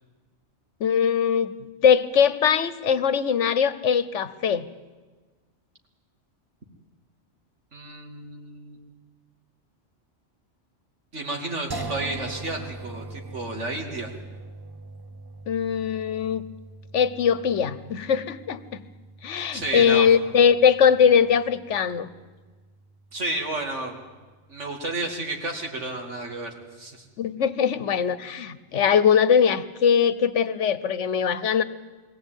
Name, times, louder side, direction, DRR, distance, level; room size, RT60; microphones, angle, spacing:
voice 1, 0.8-1.5 1.8-4.7 15.5-16.4 16.9-18.8 19.2-22.1 27.2-31.6, left 7 dB, 80° left, 14 dB, 1.2 m, -21 dB
voice 2, 7.7-8.8 11.1-14.1 19.5-20.1 23.1-24.0 24.5-27.0, right 2 dB, 80° right, 2 dB, 2.8 m, -31 dB
sound 1, 11.7-24.8, right 2 dB, 20° right, 0.8 m, -42 dB
22.5 x 16.0 x 9.1 m, 1.3 s
omnidirectional pair, 1.2 m